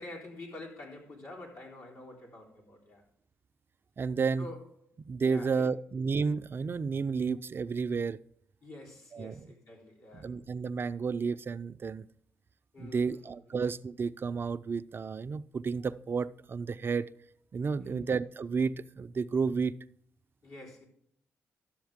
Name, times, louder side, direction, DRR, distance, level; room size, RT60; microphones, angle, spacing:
voice 1, 0.0-3.0 4.4-4.6 5.2-5.7 8.6-10.4 12.7-13.3 17.8-18.1 20.4-20.8, left 2 dB, 70° left, -1 dB, 3.3 m, -47 dB
voice 2, 4.0-4.5 5.1-8.2 9.1-9.5 10.1-12.1 12.8-17.0 17.5-19.7, right 5 dB, 45° right, 13 dB, 0.4 m, -31 dB
11.5 x 7.3 x 3.6 m, 0.66 s
supercardioid pair, 55°, 5 cm